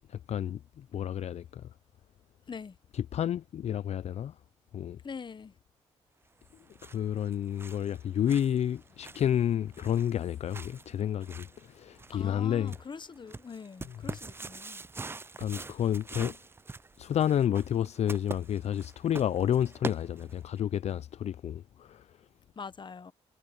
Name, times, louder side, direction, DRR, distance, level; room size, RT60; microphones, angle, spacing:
voice 1, 0.1-1.6 3.1-4.3 4.7-5.0 6.8-12.7 15.4-16.4 17.0-22.1, left 10 dB, 65° left, 0.4 m, -30 dB
voice 2, 5.0-5.6 12.1-14.8 15.6-15.8 22.6-23.1, left 5 dB, 40° left, 0.9 m, -43 dB
sound 1, 6.4-20.6, right 3 dB, 20° right, 0.4 m, -45 dB
cardioid pair, 70°, 12 cm